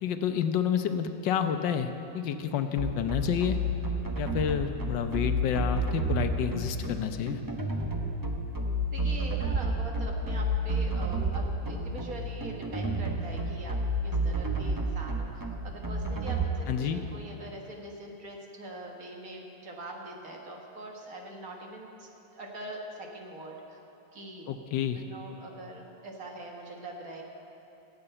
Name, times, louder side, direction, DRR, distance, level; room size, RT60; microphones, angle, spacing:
voice 1, 0.0-3.6 4.2-7.4 16.7-17.0 24.5-25.0, left 8 dB, 75° left, 8 dB, 1.3 m, -29 dB
sound 1, 2.8-16.5, right 1 dB, 25° right, 0.4 m, -30 dB
voice 2, 8.9-13.8 14.0-23.8 24.1-24.5 24.9-27.2, right 2 dB, 50° right, 0 dB, 1.7 m, -43 dB
15.0 x 6.9 x 8.7 m, 2.9 s
omnidirectional pair, 2.0 m